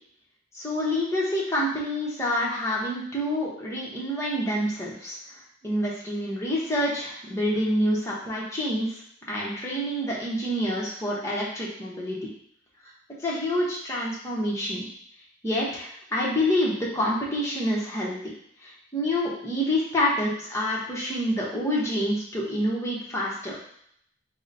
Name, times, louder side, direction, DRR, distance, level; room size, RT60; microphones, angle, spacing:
voice 1, 0.5-5.2 5.6-8.9 9.3-12.2 13.2-14.9 15.4-18.3 18.6-23.6, equal, 15° left, -5 dB, 0.9 m, -27 dB
3.9 x 2.1 x 4.0 m, 0.67 s
head